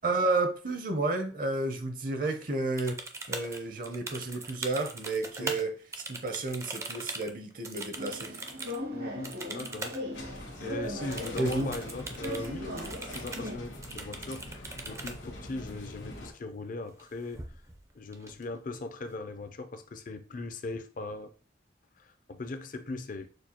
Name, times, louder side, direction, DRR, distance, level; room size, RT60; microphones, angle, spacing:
voice 1, 0.0-3.0 3.3-5.7 6.1-8.5 11.4-11.7, right 2 dB, 50° right, 0.7 m, -31 dB
sound 1, 2.8-5.6 5.9-8.8 9.2-10.0 10.3-10.4 11.1-12.5 12.8-13.5 13.8-15.1 16.8-17.0 17.3-17.8 18.1-18.8, right 3 dB, 15° right, 0.4 m, -40 dB
voice 2, 5.2-5.6 8.9-17.5 17.9-21.3 22.0-23.3, left 3 dB, 45° left, 0.5 m, -39 dB
sound 2, 8.0-13.6, equal, 90° right, 2.0 m, -39 dB
sound 3, 10.1-16.3, left 1 dB, 80° left, 1.6 m, -44 dB
6.3 x 2.3 x 2.9 m
head